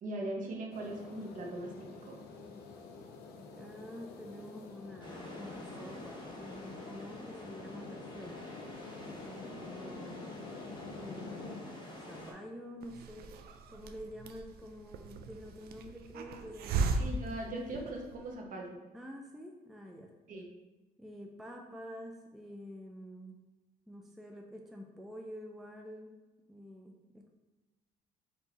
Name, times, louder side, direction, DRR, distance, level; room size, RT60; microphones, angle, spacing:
voice 1, 0.0-2.2 17.0-18.8 20.3-20.5, right 1 dB, 50° right, 0 dB, 1.0 m, -40 dB
sound 1, 0.7-11.6, left 4 dB, 70° left, 0.7 m, -48 dB
voice 2, 3.3-8.5 9.1-10.3 11.0-11.7 12.1-13.4 13.7-16.9 18.9-20.1 21.0-23.4 23.9-26.2 26.5-27.3, equal, ahead, 1 dB, 0.4 m, -48 dB
sound 2, 5.0-12.3, left 1 dB, 25° left, 1.1 m, -47 dB
Hiss, 12.8-18.3, right 4 dB, 65° right, 0.5 m, -37 dB
4.6 x 2.8 x 4.0 m, 1.2 s
cardioid pair, 110°, 17 cm